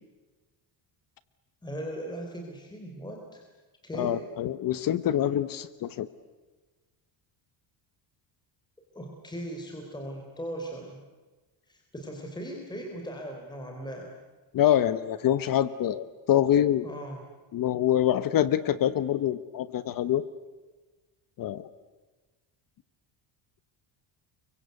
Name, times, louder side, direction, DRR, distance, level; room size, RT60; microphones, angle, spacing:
voice 1, 1.6-3.4 3.8-4.2 8.9-11.0 11.7-14.1 16.8-17.2, right 1 dB, 10° left, 1 dB, 3.6 m, -38 dB
voice 2, 4.0-6.1 14.5-16.8 17.5-20.2 21.4-21.7, left 11 dB, 45° left, 14 dB, 1.0 m, -25 dB
30.0 x 23.5 x 8.2 m, 1.3 s
cardioid pair, 170°, 46 cm